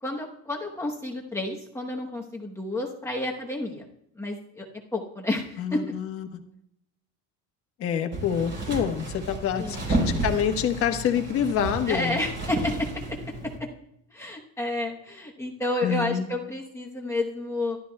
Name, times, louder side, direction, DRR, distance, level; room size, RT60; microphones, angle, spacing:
voice 1, 0.0-3.9 4.1-4.7 4.9-5.8 9.6-9.9 11.9-13.2 13.6-13.7 14.1-17.8, left 2 dB, 5° left, -1 dB, 0.9 m, -30 dB
voice 2, 5.6-6.3 7.8-12.2 15.8-16.3, left 8 dB, 40° left, 5 dB, 1.2 m, -27 dB
sound 1, 8.1-13.6, right 2 dB, 30° right, 4.3 m, -31 dB
25.0 x 12.0 x 2.3 m, 0.75 s
cardioid pair, 170°, 37 cm